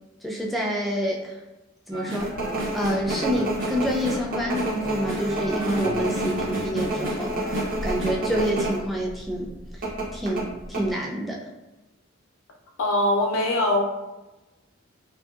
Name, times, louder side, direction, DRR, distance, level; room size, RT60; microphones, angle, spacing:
voice 1, 0.2-1.4 1.9-2.4 2.7-9.9 10.1-11.4, equal, ahead, -3 dB, 0.3 m, -28 dB
sound 1, 1.9-8.6, right 1 dB, 85° right, 0.9 m, -33 dB
sound 2, 2.2-8.8 9.1-9.2 9.8-10.8, right 1 dB, 45° right, 0.6 m, -29 dB
voice 2, 12.8-13.8, left 1 dB, 90° left, 0 dB, 0.5 m, -22 dB
2.7 x 2.7 x 2.3 m, 1.1 s
head